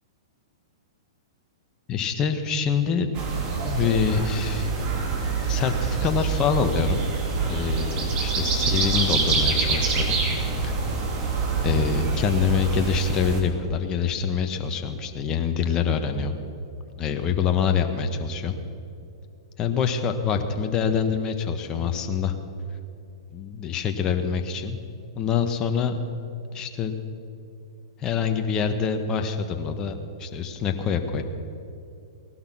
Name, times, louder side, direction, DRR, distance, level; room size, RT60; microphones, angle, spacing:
voice 1, 1.9-3.1 3.6-4.9 5.5-7.1 7.5-10.7 11.6-16.3 17.0-18.6 19.6-22.4 23.3-24.8 25.1-25.9 26.5-26.9 28.0-31.2, left 6 dB, 30° left, 6 dB, 1.4 m, -25 dB
sound 1, 3.1-13.4, right 4 dB, 35° right, 2.9 m, -26 dB
18.0 x 12.0 x 6.2 m, 2.6 s
hypercardioid pair, 115°, 3 cm